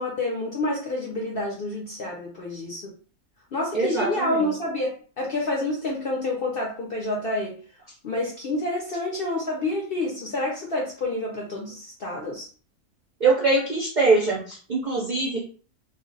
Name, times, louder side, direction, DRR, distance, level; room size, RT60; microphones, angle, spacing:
voice 1, 0.0-2.9 3.5-4.9 5.2-7.5 8.0-12.5, left 2 dB, 60° left, -1 dB, 0.6 m, -28 dB
voice 2, 3.7-4.5 13.2-15.4, right 3 dB, 60° right, -4 dB, 0.5 m, -23 dB
2.4 x 2.1 x 3.8 m, 0.42 s
omnidirectional pair, 1.5 m